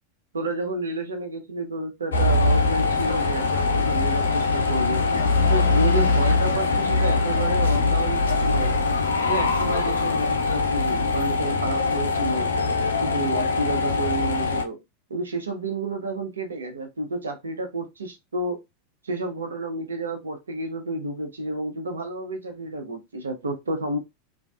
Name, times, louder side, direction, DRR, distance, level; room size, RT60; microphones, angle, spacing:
voice 1, 0.3-5.1 5.5-8.8 9.3-12.5 13.0-14.8 15.1-18.6 19.0-24.0, right 2 dB, 80° right, 0.7 m, -30 dB
sound 1, 2.1-14.6, left 3 dB, 75° left, 0.5 m, -22 dB
3.4 x 2.4 x 2.3 m
figure-of-eight pair, 85°, 0 cm